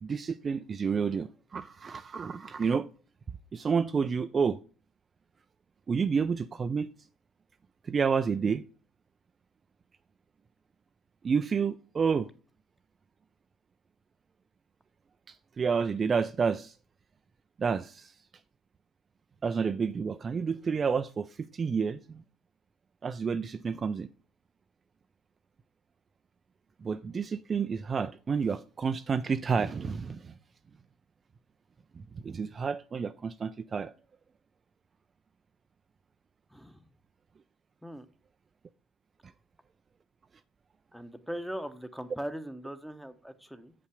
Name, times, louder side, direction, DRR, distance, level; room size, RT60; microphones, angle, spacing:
voice 1, 0.0-2.9 3.5-4.6 5.9-6.9 7.8-8.6 11.2-12.3 15.3-16.7 17.6-18.1 19.4-22.2 23.0-24.1 26.8-30.3 31.9-33.9 39.2-39.3, right 5 dB, 35° right, 0.4 m, -30 dB
voice 2, 36.5-36.8 37.8-38.1 40.9-43.7, equal, ahead, 1.0 m, -40 dB
7.7 x 5.4 x 4.9 m
figure-of-eight pair, 55°, 0 cm